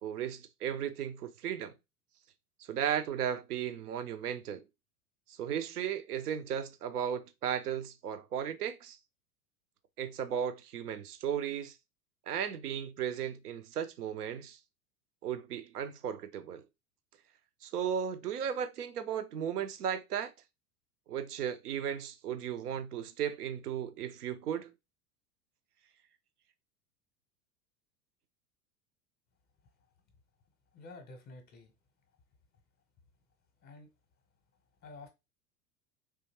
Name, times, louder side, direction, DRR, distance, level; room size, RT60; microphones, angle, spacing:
voice 1, 0.0-1.7 2.7-4.6 5.3-9.0 10.0-11.7 12.3-14.6 15.2-16.6 17.6-20.3 21.1-24.7, right 9 dB, 75° right, 0.6 m, -35 dB
voice 2, 30.7-31.7 33.6-33.9 34.8-35.1, left 3 dB, 20° left, 0.7 m, -50 dB
3.7 x 2.8 x 2.8 m
figure-of-eight pair, 85°, 47 cm